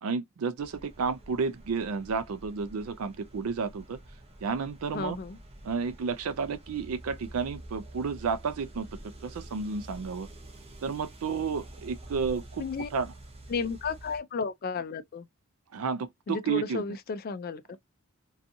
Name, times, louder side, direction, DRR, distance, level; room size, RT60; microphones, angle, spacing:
voice 1, 0.0-4.0 4.4-5.2 5.6-8.9 9.2-10.3 10.8-12.6 12.9-13.1 15.7-16.8, right 5 dB, 80° right, 0.4 m, -31 dB
sound 1, 0.6-14.2, right 1 dB, 25° right, 0.6 m, -48 dB
voice 2, 4.9-5.4 12.6-12.9 13.5-15.3 16.3-17.8, left 5 dB, 40° left, 0.3 m, -33 dB
2.6 x 2.3 x 2.6 m
head